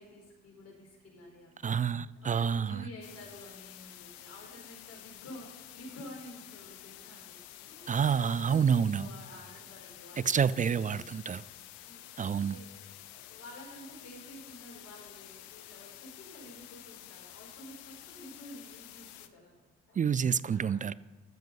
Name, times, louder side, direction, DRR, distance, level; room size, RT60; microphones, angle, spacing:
voice 1, 0.0-1.7 2.0-11.1 11.8-12.0 12.3-12.7 13.1-19.6 19.9-20.0 20.5-21.0, left 1 dB, 50° left, 4.9 m, -50 dB
voice 2, 1.6-2.8 7.9-9.1 10.3-11.4 12.2-12.6 20.0-20.9, right 7 dB, 25° right, 0.4 m, -28 dB
sound 1, 3.0-19.3, left 13 dB, 85° left, 0.7 m, -50 dB
13.5 x 7.5 x 5.4 m
hypercardioid pair, 50°, 32 cm